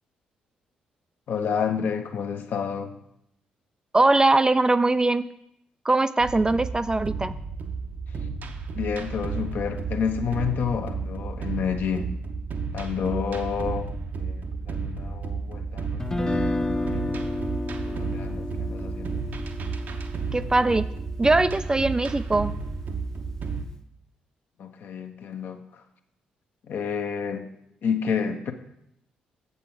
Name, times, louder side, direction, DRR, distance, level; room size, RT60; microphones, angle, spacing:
voice 1, 1.3-3.0 8.7-12.2 12.7-13.9 14.2-17.2 17.9-19.2 24.6-25.8 26.6-27.5 27.8-28.5, left 7 dB, 55° left, 6 dB, 0.8 m, -30 dB
voice 2, 3.9-5.3 5.9-7.4 20.3-20.8 21.2-22.5, right 2 dB, 20° right, 13 dB, 0.3 m, -21 dB
sound 1, 6.2-23.7, right 4 dB, 50° right, 0.7 m, -32 dB
Guitar, 16.0-22.1, left 2 dB, 15° left, 0.7 m, -32 dB
7.5 x 6.9 x 4.5 m, 0.78 s
figure-of-eight pair, 40°, 4 cm